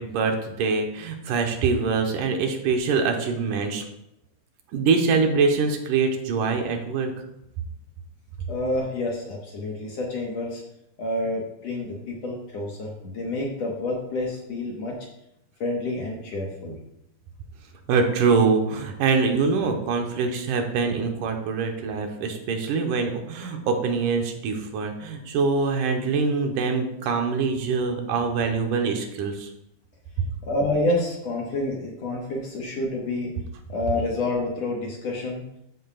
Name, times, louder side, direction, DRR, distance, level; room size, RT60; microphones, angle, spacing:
voice 1, 0.0-3.9 4.7-7.1 17.9-29.5 30.2-30.3, right 4 dB, 80° right, 4 dB, 2.5 m, -24 dB
voice 2, 8.5-10.6 11.0-14.9 15.6-16.8 30.5-33.3 33.7-35.4, left 2 dB, 60° left, -1 dB, 2.1 m, -28 dB
13.5 x 7.9 x 2.4 m, 0.82 s
omnidirectional pair, 3.7 m